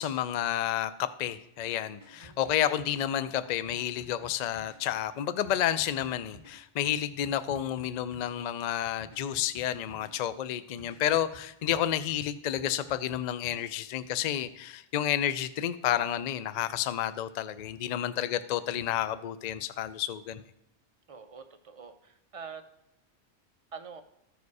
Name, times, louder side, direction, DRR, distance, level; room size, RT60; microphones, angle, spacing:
voice 1, 0.0-20.4, left 11 dB, 65° left, 14 dB, 0.4 m, -30 dB
sound 1, 2.0-3.0 3.7-4.8 5.4-6.6 7.2-8.3 9.0-10.1 10.8-11.9 12.6-13.7, left 1 dB, 40° left, 1.4 m, -52 dB
voice 2, 2.1-2.5 21.1-22.7 23.7-24.0, right 6 dB, 35° right, 8 dB, 0.6 m, -45 dB
14.0 x 5.1 x 4.7 m, 0.81 s
omnidirectional pair, 1.2 m